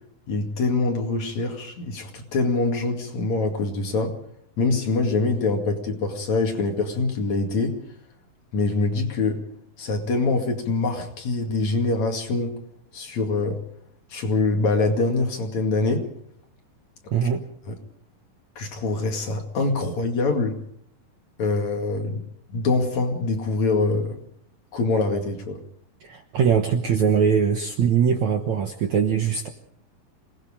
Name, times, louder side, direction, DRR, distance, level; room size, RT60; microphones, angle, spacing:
voice 1, 0.3-4.1 4.6-7.7 8.5-9.4 9.8-12.5 12.9-13.6 14.1-16.1 17.2-17.3 17.7-17.8 18.6-20.6 21.4-24.2 24.7-25.6, left 3 dB, 50° left, 3 dB, 3.1 m, -24 dB
voice 2, 17.1-17.4 26.0-29.5, right 7 dB, 65° right, 5 dB, 1.9 m, -21 dB
27.5 x 20.0 x 5.0 m, 0.69 s
omnidirectional pair, 4.8 m